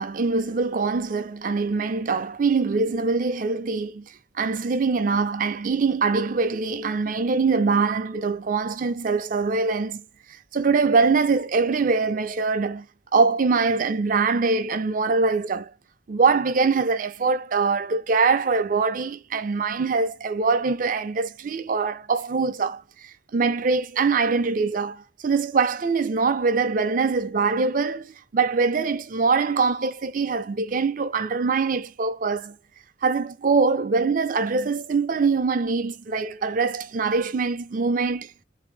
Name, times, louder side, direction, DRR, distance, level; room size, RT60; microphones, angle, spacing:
voice 1, 0.0-10.0 10.5-12.9 13.1-15.7 16.1-32.6 33.0-38.3, right 4 dB, 45° right, 0.4 m, -23 dB
3.3 x 2.7 x 3.3 m
head